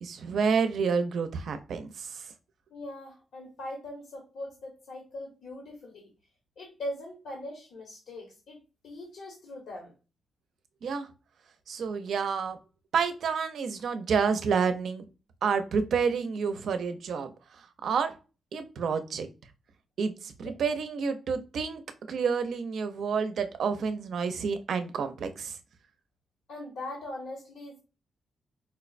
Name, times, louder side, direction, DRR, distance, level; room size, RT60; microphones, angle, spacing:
voice 1, 0.0-2.3 10.8-11.1 11.7-12.6 12.9-15.1 15.4-17.3 17.8-18.1 18.5-19.3 20.0-21.8 22.1-25.6, right 5 dB, 65° right, 9 dB, 0.5 m, -29 dB
voice 2, 2.7-6.1 6.6-8.6 8.8-9.9 20.4-20.5 26.5-27.8, left 1 dB, 80° left, -1 dB, 1.0 m, -41 dB
4.3 x 2.1 x 2.4 m, 0.32 s
wide cardioid pair, 130°, 0 cm